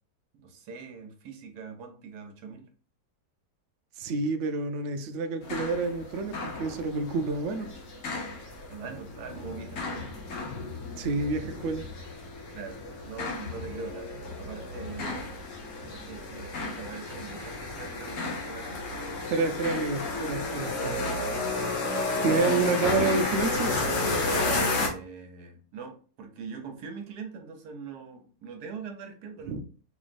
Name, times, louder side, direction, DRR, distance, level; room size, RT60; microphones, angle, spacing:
voice 1, 0.4-2.7 8.7-10.1 12.5-14.1 14.4-15.4 15.9-19.2 22.2-22.5 24.7-29.6, right 5 dB, 65° right, 5 dB, 1.3 m, -42 dB
voice 2, 4.0-7.7 11.0-11.8 19.3-21.0 22.2-23.7 29.5-29.6, right 4 dB, 90° right, 7 dB, 0.6 m, -29 dB
sound 1, 5.4-24.9, left 3 dB, 55° left, 1.1 m, -32 dB
4.5 x 3.1 x 2.5 m, 0.40 s
omnidirectional pair, 1.9 m